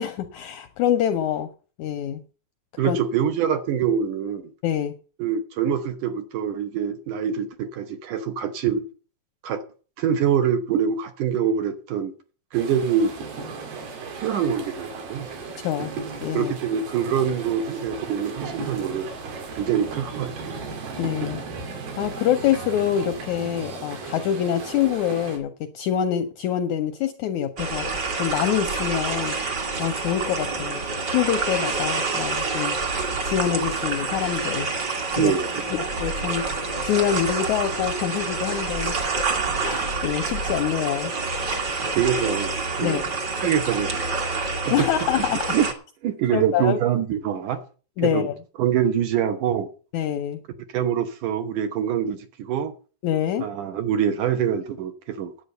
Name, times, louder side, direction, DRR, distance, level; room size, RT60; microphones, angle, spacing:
voice 1, 0.0-1.5 1.8-2.2 2.8-3.0 4.6-4.9 15.6-15.9 16.2-16.5 21.0-30.8 31.1-32.8 33.2-34.7 35.2-35.3 35.7-36.5 36.8-39.3 39.6-41.1 42.8-43.0 44.7-45.6 46.3-46.8 48.0-48.4 49.9-50.4 53.0-53.5, left 10 dB, 75° left, 1.8 m, -25 dB
voice 2, 2.8-4.4 5.2-8.9 9.4-9.6 10.0-12.1 12.5-13.1 14.2-15.3 16.3-19.1 19.5-20.6 35.2-35.5 42.0-43.1 43.4-44.1 44.7-44.8 45.5-45.7 46.0-47.6 48.0-48.3 48.6-49.7 50.7-52.7 53.4-55.3, right 8 dB, 70° right, 2.3 m, -24 dB
sound 1, 12.5-25.4, right 4 dB, 85° right, 4.2 m, -35 dB
sound 2, 27.6-45.7, right 4 dB, 40° right, 1.6 m, -27 dB
10.0 x 8.5 x 6.6 m
omnidirectional pair, 4.2 m